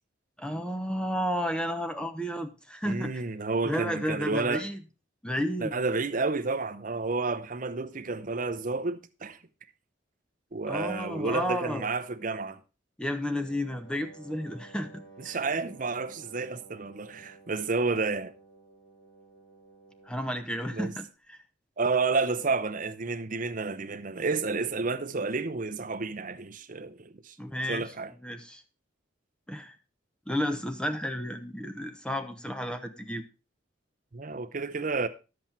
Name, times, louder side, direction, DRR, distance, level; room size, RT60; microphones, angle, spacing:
voice 1, 0.4-3.1 3.6-4.8 5.2-5.7 10.7-11.9 13.0-15.4 20.1-21.4 27.4-27.9 28.2-28.6 29.5-29.7 30.3-33.2, equal, 5° left, 0.9 m, -32 dB
voice 2, 2.9-4.7 5.6-9.4 10.5-12.6 15.2-18.3 20.7-20.9 21.8-27.4 27.7-28.1 34.1-35.1, right 3 dB, 45° right, 0.7 m, -30 dB
Wind instrument woodwind instrument, 13.3-20.9, right 3 dB, 85° left, 7.3 m, -53 dB
10.5 x 7.9 x 4.2 m
head